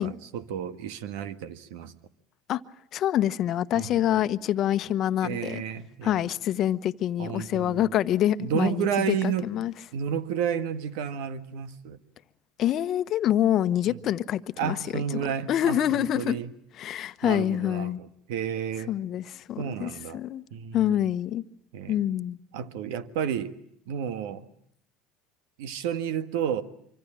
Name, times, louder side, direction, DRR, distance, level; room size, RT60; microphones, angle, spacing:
voice 1, 0.0-1.9 3.7-4.2 5.2-6.2 7.2-7.9 8.4-9.5 9.9-12.0 13.8-14.0 14.6-16.5 17.2-18.9 19.6-20.2 20.5-21.0 21.7-22.0 22.5-23.5 23.9-24.5 25.6-26.6, right 8 dB, 75° right, 1.5 m, -31 dB
voice 2, 2.9-5.6 6.0-9.7 12.6-14.8 15.1-15.2 15.5-16.4 16.7-18.0 18.9-20.4 20.7-21.4 21.9-22.4, left 11 dB, 50° left, 1.0 m, -26 dB
25.5 x 25.0 x 8.8 m
hypercardioid pair, 85°, 0 cm